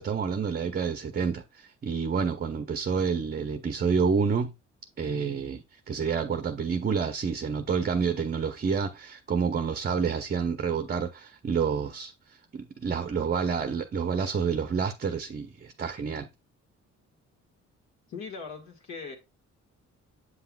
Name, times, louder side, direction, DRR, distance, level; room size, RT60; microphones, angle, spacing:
voice 1, 0.0-4.5 5.0-16.3, right 6 dB, 30° right, 0.6 m, -29 dB
voice 2, 18.1-19.2, left 5 dB, 65° left, 1.8 m, -39 dB
7.8 x 5.6 x 2.3 m
cardioid pair, 90°, 30 cm